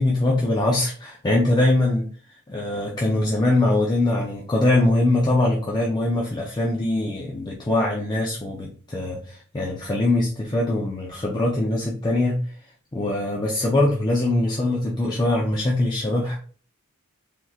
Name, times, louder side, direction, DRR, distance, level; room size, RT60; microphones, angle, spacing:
voice 1, 0.0-2.1 2.5-12.4 12.9-16.4, left 2 dB, 20° left, -2 dB, 0.5 m, -22 dB
3.6 x 2.9 x 2.3 m, 0.42 s
head